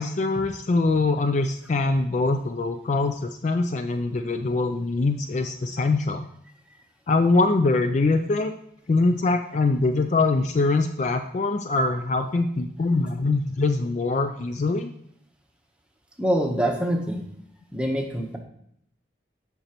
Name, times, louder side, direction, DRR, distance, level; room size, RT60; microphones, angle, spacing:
voice 1, 0.0-6.3 7.1-8.5 8.9-14.9, left 3 dB, 40° left, 7 dB, 0.3 m, -23 dB
voice 2, 16.2-17.2 17.7-18.4, equal, 5° right, 1 dB, 0.9 m, -25 dB
8.1 x 6.0 x 2.9 m, 0.71 s
head